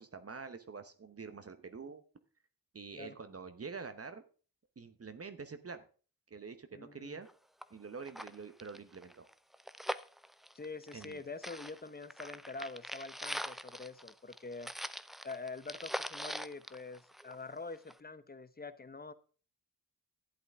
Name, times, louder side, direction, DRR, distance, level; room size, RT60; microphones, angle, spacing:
voice 1, 0.0-2.0 2.7-4.2 4.8-5.9 6.3-7.3 7.7-9.2 10.9-11.2, right 5 dB, 35° right, 9 dB, 0.9 m, -46 dB
voice 2, 6.7-7.2 10.5-14.7 15.2-19.1, left 3 dB, 25° left, 14 dB, 0.8 m, -45 dB
sound 1, 7.3-7.4 7.6-7.7 8.0-11.2 11.4-17.5 17.9-18.0, equal, ahead, 0.4 m, -42 dB
11.5 x 8.2 x 3.6 m, 0.38 s
cardioid pair, 65°, 39 cm